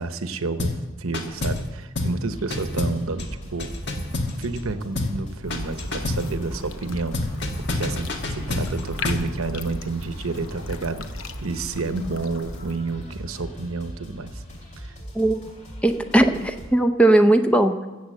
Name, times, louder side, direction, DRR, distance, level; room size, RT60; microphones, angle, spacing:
voice 1, 0.0-3.7 4.4-7.2 7.6-14.4 14.8-15.0, right 3 dB, 75° right, 10 dB, 0.8 m, -30 dB
sound 1, 0.6-0.9 1.1-1.7 2.0-2.2 2.5-4.7 5.0-5.2 5.5-6.3 7.1-9.3, left 2 dB, 50° left, 1.5 m, -28 dB
sound 2, 2.3-16.7, equal, 35° left, 2.5 m, -40 dB
sound 3, 5.4-12.8, left 3 dB, 70° left, 0.9 m, -38 dB
voice 2, 15.8-17.9, right 1 dB, 5° left, 8 dB, 0.5 m, -18 dB
15.0 x 7.1 x 7.7 m, 1.2 s
head